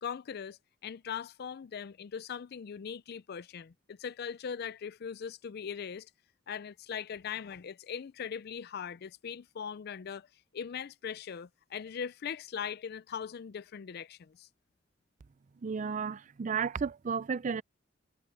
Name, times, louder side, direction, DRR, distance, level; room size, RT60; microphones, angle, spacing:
voice 1, 0.0-6.1 6.5-10.3 10.5-14.5, left 7 dB, 55° left, 0.4 m, -40 dB
voice 2, 15.6-17.6, right 6 dB, 40° right, 0.4 m, -33 dB
head